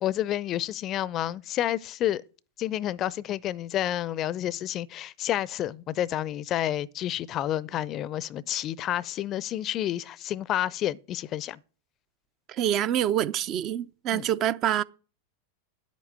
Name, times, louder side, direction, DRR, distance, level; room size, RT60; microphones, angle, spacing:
voice 1, 0.0-2.2 2.6-11.6 14.1-14.3, left 12 dB, 35° left, 0.5 m, -29 dB
voice 2, 12.5-14.8, right 11 dB, 35° right, 0.5 m, -26 dB
10.0 x 8.4 x 8.0 m
figure-of-eight pair, 90°, 0 cm